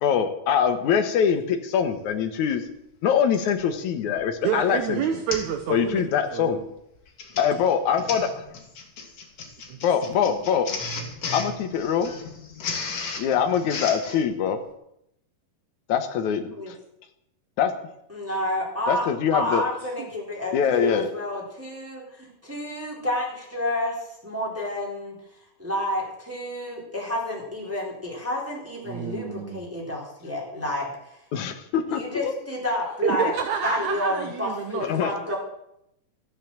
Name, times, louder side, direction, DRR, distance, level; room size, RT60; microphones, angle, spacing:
voice 1, 0.0-2.6 3.0-5.0 5.7-6.6 7.4-8.3 9.8-10.7 11.3-12.1 13.2-14.6 15.9-16.4 17.6-17.7 18.9-19.6 20.5-21.1 31.3-32.3 34.8-35.1, left 7 dB, 65° left, 7 dB, 2.2 m, -23 dB
Printer, 2.1-2.2 3.3-3.6 4.2-4.4 4.7-4.8 5.3-5.6 5.9-6.2 7.0-14.2, left 4 dB, 45° left, 2.6 m, -35 dB
voice 2, 4.4-6.1 6.3-6.7 9.7-10.4 19.8-20.1 28.8-29.6 33.0-34.9 35.3-35.4, right 8 dB, 65° right, 6 dB, 2.0 m, -29 dB
voice 3, 18.1-19.1 19.3-23.9 24.2-25.1 25.6-30.9 31.9-33.3 33.6-35.4, left 1 dB, 5° right, -3 dB, 3.4 m, -29 dB
14.0 x 9.2 x 7.5 m, 0.78 s
omnidirectional pair, 4.2 m